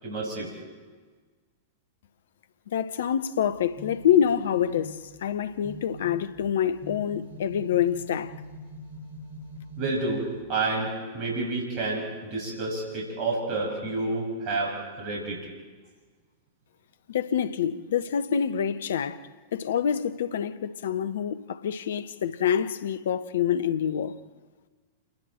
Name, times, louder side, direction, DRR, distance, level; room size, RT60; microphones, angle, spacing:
voice 1, 0.0-0.5 9.8-15.4, right 3 dB, 45° right, 7.2 m, -29 dB
voice 2, 2.7-8.3 17.1-24.2, left 9 dB, 65° left, 1.0 m, -26 dB
sound 1, 3.5-10.4, equal, 60° right, 5.2 m, -44 dB
28.5 x 21.5 x 4.5 m
figure-of-eight pair, 95°, 0 cm